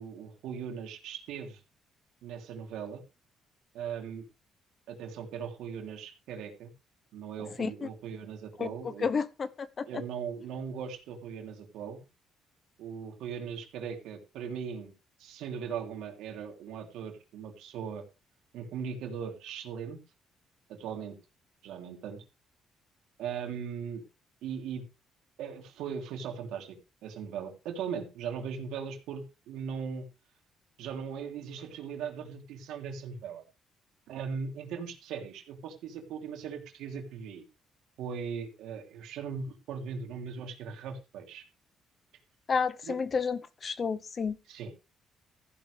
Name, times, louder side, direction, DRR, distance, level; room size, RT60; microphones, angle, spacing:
voice 1, 0.0-1.6 2.2-3.0 3.7-4.2 4.9-6.7 7.1-9.1 9.9-12.0 12.8-14.9 15.2-18.0 18.5-20.0 20.7-21.2 21.6-22.2 23.2-24.0 24.4-24.8 25.4-30.1 30.8-33.4 34.1-37.4 38.0-41.4 42.8-43.0 44.5-44.7, right 7 dB, 85° right, 3.1 m, -39 dB
voice 2, 42.5-44.4, left 5 dB, 35° left, 0.8 m, -30 dB
15.0 x 10.5 x 3.4 m
cardioid pair, 120°, 0 cm